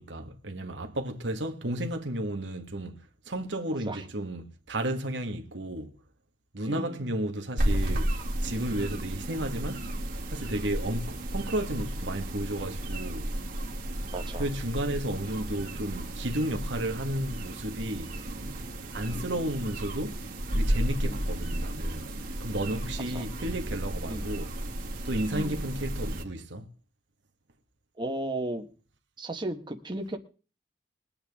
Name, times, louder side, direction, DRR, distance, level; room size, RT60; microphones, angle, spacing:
voice 1, 0.0-5.9 6.5-8.1 8.4-9.9 10.3-13.3 14.4-18.1 18.9-20.2 20.5-22.1 22.4-24.5 25.0-26.7, right 1 dB, 80° right, 1.6 m, -33 dB
voice 2, 6.7-7.0 8.8-9.0 10.8-11.0 14.1-14.5 19.0-19.3 21.0-21.3 23.1-23.2 24.1-24.2 25.3-25.6 28.0-28.7 29.2-30.2, right 1 dB, 25° right, 1.4 m, -35 dB
sound 1, 7.6-26.2, right 1 dB, 55° right, 2.0 m, -33 dB
22.0 x 8.7 x 3.6 m
head